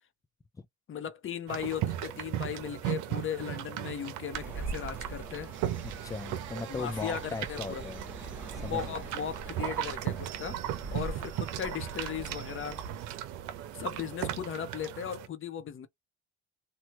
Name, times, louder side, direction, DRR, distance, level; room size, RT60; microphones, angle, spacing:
voice 1, 0.9-5.5 6.7-7.8 8.6-10.6 10.9-12.8 13.7-15.9, left 9 dB, 45° left, 0.8 m, -37 dB
sound 1, 1.5-15.3, right 12 dB, 85° right, 0.7 m, -37 dB
sound 2, 4.3-12.9, right 3 dB, 5° right, 1.2 m, -43 dB
sound 3, 5.5-14.2, right 12 dB, 40° right, 0.4 m, -49 dB
voice 2, 5.8-9.0, left 4 dB, 10° left, 0.5 m, -39 dB
3.0 x 2.3 x 2.9 m
cardioid pair, 90°, 30 cm